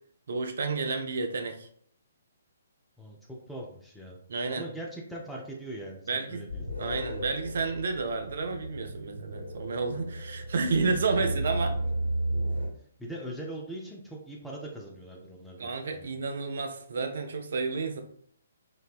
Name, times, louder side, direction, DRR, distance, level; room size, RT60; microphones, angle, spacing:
voice 1, 0.3-1.7 4.3-4.6 6.1-6.4 6.8-11.7 15.6-18.0, right 4 dB, 55° right, 6 dB, 0.4 m, -31 dB
voice 2, 3.0-4.2 4.5-6.6 11.2-11.5 13.0-16.2, right 1 dB, 5° left, -2 dB, 0.4 m, -41 dB
sound 1, 6.5-12.7, right 1 dB, 75° left, 1.3 m, -34 dB
4.0 x 2.1 x 2.3 m, 0.64 s
figure-of-eight pair, 130°, 0 cm